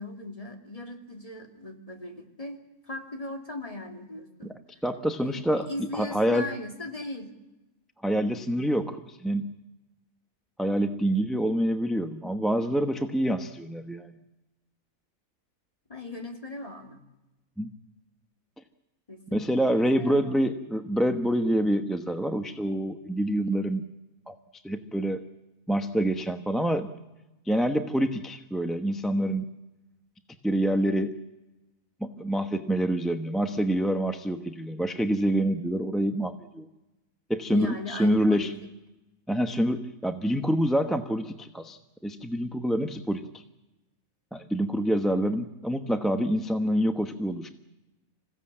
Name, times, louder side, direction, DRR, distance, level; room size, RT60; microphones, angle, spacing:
voice 1, 0.0-2.6 2.8-4.5 5.2-7.3 15.9-17.0 19.1-20.5 37.5-38.5, left 1 dB, 25° left, 2 dB, 2.8 m, -38 dB
voice 2, 4.8-6.5 8.0-9.5 10.6-14.1 17.6-17.7 19.3-23.8 24.3-24.4 24.6-25.2 25.7-26.9 27.4-29.5 30.4-31.2 32.0-36.7 37.3-38.5 39.3-43.4 44.3-47.5, equal, ahead, 6 dB, 0.8 m, -26 dB
27.0 x 16.0 x 8.7 m, 1.0 s
omnidirectional pair, 1.5 m